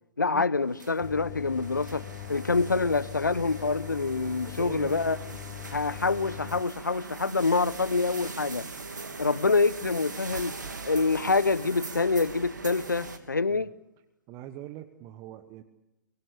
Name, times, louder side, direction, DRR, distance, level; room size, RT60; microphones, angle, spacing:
voice 1, 0.2-5.2 5.7-8.7 9.2-10.6 10.8-13.7, left 3 dB, 75° left, 0.9 m, -26 dB
sound 1, 0.6-13.2, right 4 dB, 70° right, 3.0 m, -41 dB
sound 2, 1.0-6.6, left 14 dB, 35° left, 0.9 m, -41 dB
voice 2, 4.4-5.0 13.5-13.7 14.3-15.6, right 14 dB, 25° right, 1.3 m, -42 dB
23.5 x 23.5 x 8.4 m
figure-of-eight pair, 120°, 10 cm